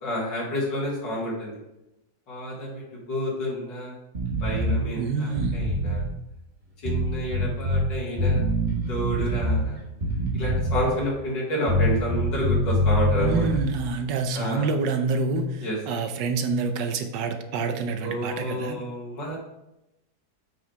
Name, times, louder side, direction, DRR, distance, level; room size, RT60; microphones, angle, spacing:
voice 1, 0.0-1.6 2.3-3.9 4.4-6.0 6.8-8.4 8.9-9.8 10.3-13.5 14.3-14.7 15.6-15.8 18.0-19.4, equal, 90° left, -4 dB, 2.8 m, -29 dB
sound 1, 4.1-4.8 5.3-6.1 6.9-7.9 8.2-9.6 10.0-11.0 11.7-13.7, equal, 30° right, 1.4 m, -24 dB
voice 2, 5.0-5.5 13.2-18.8, right 4 dB, 85° right, 7 dB, 1.4 m, -27 dB
7.9 x 6.1 x 3.4 m, 0.90 s
omnidirectional pair, 1.9 m